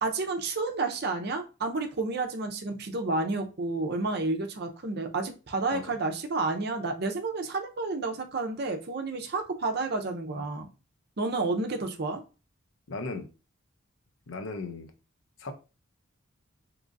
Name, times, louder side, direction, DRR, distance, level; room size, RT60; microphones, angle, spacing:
voice 1, 0.0-10.7 11.2-12.2, right 3 dB, 50° right, 0.6 m, -30 dB
voice 2, 12.9-13.3 14.3-14.9 15.4-15.5, left 3 dB, 70° left, 0.6 m, -36 dB
3.7 x 3.0 x 2.6 m
head